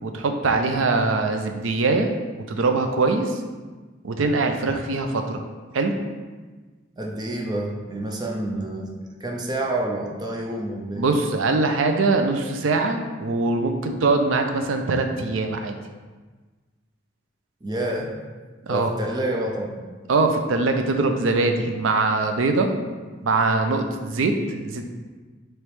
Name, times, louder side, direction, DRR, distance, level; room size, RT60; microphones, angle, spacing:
voice 1, 0.0-2.1 2.5-3.4 4.0-5.4 5.7-6.0 10.9-15.8 18.6-19.0 20.1-22.7 23.2-24.8, right 3 dB, 85° right, 5 dB, 0.5 m, -22 dB
voice 2, 7.0-11.0 17.6-18.1 18.7-19.8, right 1 dB, 20° right, 0 dB, 0.5 m, -28 dB
3.3 x 3.0 x 4.6 m, 1.3 s
head